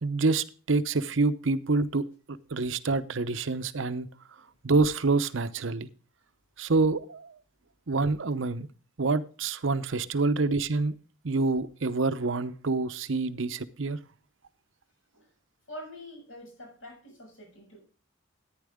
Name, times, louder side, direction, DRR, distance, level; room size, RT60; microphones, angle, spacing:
voice 1, 0.0-4.1 4.6-5.9 6.6-7.4 7.9-8.7 9.0-10.9 11.2-14.0, right 3 dB, 70° right, 13 dB, 0.8 m, -27 dB
voice 2, 15.7-17.8, equal, 75° left, 1 dB, 7.3 m, -46 dB
14.0 x 9.6 x 3.6 m, 0.37 s
head